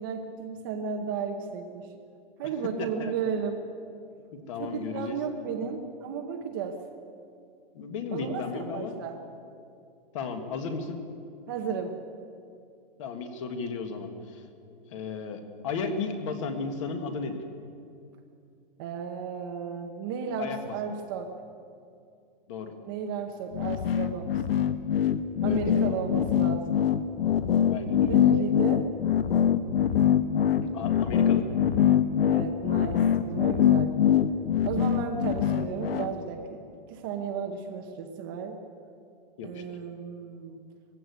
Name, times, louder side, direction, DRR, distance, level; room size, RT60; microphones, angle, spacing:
voice 1, 0.0-1.9 2.4-3.6 4.6-6.9 8.1-9.2 11.5-12.0 18.8-21.3 22.8-24.4 25.4-26.8 28.1-28.9 32.2-34.0 34.6-36.6 36.9-38.6 39.4-40.6, right 6 dB, 25° right, 4 dB, 0.9 m, -34 dB
voice 2, 4.3-5.2 7.7-9.0 10.1-11.0 13.0-14.4 14.9-17.4 20.4-20.9 22.5-22.7 25.4-25.6 25.9-26.0 27.7-28.2 30.6-31.4 39.4-39.8, left 4 dB, 35° left, 7 dB, 1.6 m, -34 dB
sound 1, 23.5-36.1, left 9 dB, 80° left, 1.2 m, -23 dB
19.5 x 15.5 x 9.4 m, 2.4 s
supercardioid pair, 180°, 29 cm